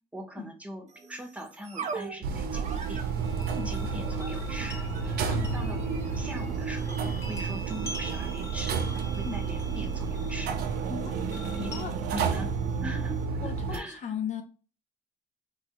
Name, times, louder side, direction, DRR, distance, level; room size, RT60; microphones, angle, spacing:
voice 1, 0.1-3.1 3.6-10.6 11.6-11.7 12.1-12.5 12.8-14.1, equal, 10° right, 2 dB, 0.8 m, -41 dB
sound 1, 0.9-13.4, right 5 dB, 45° right, 0.7 m, -45 dB
sound 2, 2.2-13.8, right 5 dB, 85° right, 0.6 m, -31 dB
sound 3, 2.8-11.9, equal, 15° left, 1.0 m, -45 dB
voice 2, 13.4-14.4, left 8 dB, 50° left, 5 dB, 0.5 m, -36 dB
3.0 x 2.3 x 2.8 m, 0.36 s
cardioid pair, 110°, 16 cm